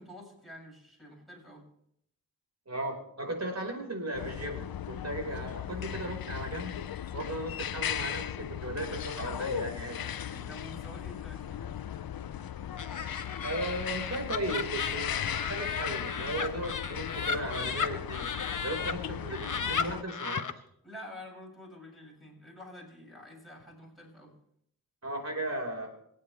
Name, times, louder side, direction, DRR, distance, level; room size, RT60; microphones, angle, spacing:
voice 1, 0.0-1.7 10.2-11.6 20.8-24.3, left 1 dB, ahead, -2 dB, 7.3 m, -48 dB
voice 2, 2.7-6.7 7.1-10.1 13.4-18.3 18.6-20.4 25.0-25.9, right 1 dB, 50° right, 2 dB, 5.0 m, -36 dB
sound 1, 4.1-20.0, left 10 dB, 85° left, 0.7 m, -37 dB
Laughter, 12.8-18.9 19.3-20.5, left 6 dB, 60° left, 1.2 m, -35 dB
26.0 x 9.3 x 3.4 m, 0.70 s
cardioid pair, 45°, 35 cm